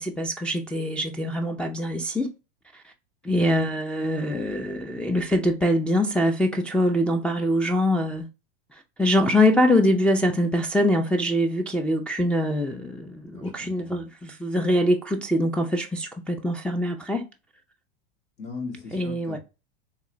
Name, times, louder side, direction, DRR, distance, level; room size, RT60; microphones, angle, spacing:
voice 1, 0.0-2.3 3.2-8.3 9.0-17.2 18.9-19.4, left 1 dB, 5° left, 0.4 m, -23 dB
voice 2, 3.2-3.6 13.3-14.0 18.4-19.4, left 4 dB, 70° left, 2.3 m, -39 dB
3.7 x 3.1 x 3.1 m
hypercardioid pair, 105°, 30 cm